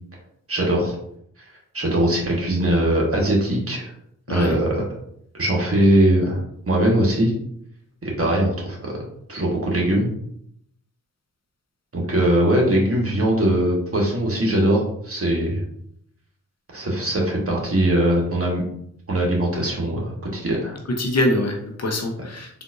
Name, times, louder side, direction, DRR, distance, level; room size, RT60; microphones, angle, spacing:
voice 1, 0.5-0.9 1.7-3.9 4.3-4.8 5.4-6.4 6.7-7.3 8.0-9.0 9.3-10.1 11.9-15.6 16.7-18.6 19.1-20.8, right 1 dB, 40° right, -2 dB, 1.3 m, -21 dB
voice 2, 20.9-22.6, left 1 dB, 45° left, 1 dB, 0.8 m, -24 dB
3.8 x 2.6 x 2.5 m, 0.71 s
supercardioid pair, 45°, 36 cm